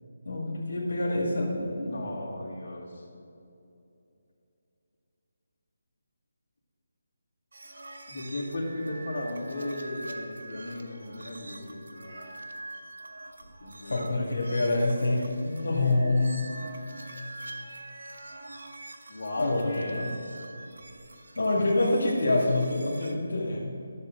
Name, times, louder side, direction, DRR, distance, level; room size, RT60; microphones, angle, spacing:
voice 1, 0.2-2.0 13.9-16.4 19.4-20.1 21.4-23.7, left 2 dB, 80° left, -3 dB, 2.1 m, -26 dB
voice 2, 1.8-3.1 8.1-12.0 13.6-14.0 19.1-20.1, left 1 dB, 55° left, -6 dB, 2.5 m, -36 dB
sound 1, 7.5-23.1, right 2 dB, 85° right, 0.9 m, -44 dB
12.0 x 6.9 x 3.9 m, 2.7 s
hypercardioid pair, 170°, 0 cm